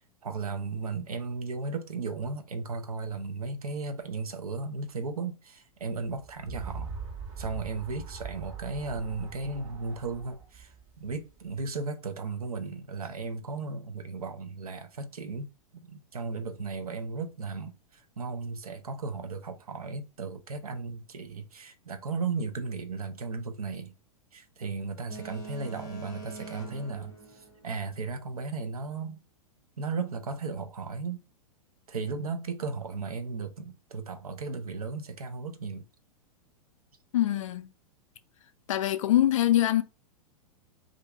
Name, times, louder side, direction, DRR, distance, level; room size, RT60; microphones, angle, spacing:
voice 1, 0.2-6.9 7.4-15.5 15.7-23.9 24.3-29.2 29.8-31.2 31.9-35.9, right 4 dB, 75° right, 0.6 m, -35 dB
sound 1, 6.1-11.6, right 5 dB, 45° right, 1.3 m, -42 dB
Boat Water vehicle, 25.1-28.2, right 4 dB, 20° left, 0.7 m, -44 dB
voice 2, 37.1-37.7 38.7-39.8, left 13 dB, 60° left, 0.4 m, -24 dB
2.5 x 2.5 x 3.3 m
figure-of-eight pair, 100°, 19 cm